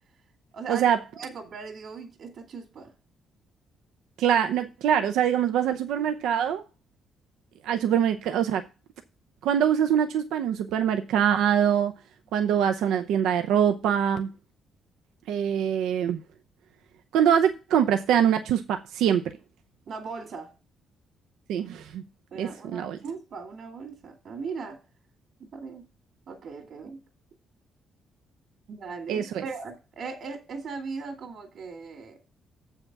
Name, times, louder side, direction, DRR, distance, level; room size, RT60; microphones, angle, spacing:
voice 1, 0.5-0.9 1.1-2.9 19.9-20.5 22.3-24.8 25.5-25.8 26.3-27.0 28.7-32.2, right 5 dB, 65° right, 2.2 m, -38 dB
voice 2, 4.2-6.6 7.6-8.6 9.4-11.9 12.3-14.3 15.3-16.2 17.1-19.2 21.5-22.0 22.4-23.0 29.1-29.4, right 9 dB, 85° right, 0.6 m, -24 dB
7.2 x 5.7 x 5.9 m
cardioid pair, 90°, 0 cm